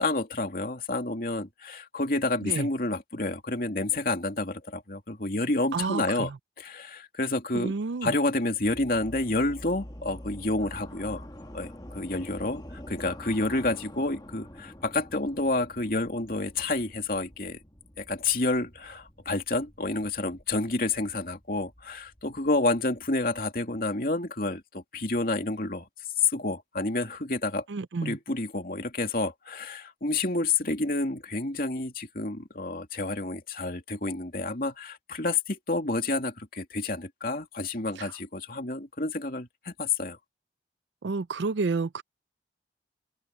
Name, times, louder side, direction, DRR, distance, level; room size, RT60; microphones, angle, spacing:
voice 1, 0.0-6.3 6.6-7.7 8.0-11.3 11.5-17.6 18.0-25.9 26.2-27.6 28.0-40.2, left 2 dB, 50° left, 2.8 m, -29 dB
voice 2, 5.7-6.4 7.5-8.1 27.7-28.2 38.0-38.1 41.0-42.0, right 4 dB, 80° right, 0.5 m, -30 dB
sound 1, 8.6-23.5, equal, 20° left, 1.7 m, -47 dB
head